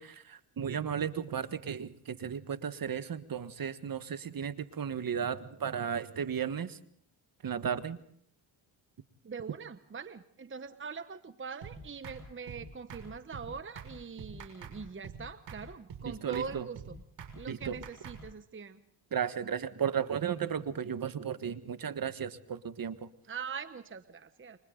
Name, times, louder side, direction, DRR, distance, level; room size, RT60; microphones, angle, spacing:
voice 1, 0.0-6.8 7.4-8.0 16.0-16.7 17.5-17.8 19.1-23.0, right 8 dB, 45° right, 12 dB, 1.5 m, -34 dB
voice 2, 9.2-17.0 17.3-18.8 23.2-24.6, right 5 dB, 25° right, 11 dB, 1.0 m, -43 dB
sound 1, 11.6-11.8 12.0-12.2 12.5-12.6 12.9-13.1 13.3-13.5 13.8-13.9 14.2-14.8 15.0-15.2 15.5-15.6 15.9-16.1 16.3-16.5 16.8-16.9 17.2-17.3 17.6-18.2, right 7 dB, 60° right, 6.4 m, -45 dB
29.5 x 25.5 x 3.9 m, 0.66 s
cardioid pair, 75°, 49 cm